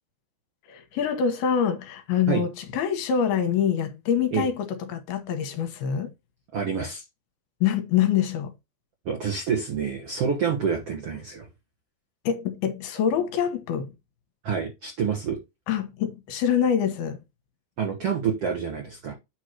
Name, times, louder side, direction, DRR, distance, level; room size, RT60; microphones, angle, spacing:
voice 1, 0.7-6.1 7.6-8.5 12.3-13.9 15.7-17.2, left 8 dB, 75° left, 2.7 m, -25 dB
voice 2, 6.5-7.0 9.0-11.5 14.4-15.4 17.8-19.1, right 6 dB, 75° right, 1.4 m, -27 dB
9.1 x 3.1 x 6.3 m
omnidirectional pair, 4.9 m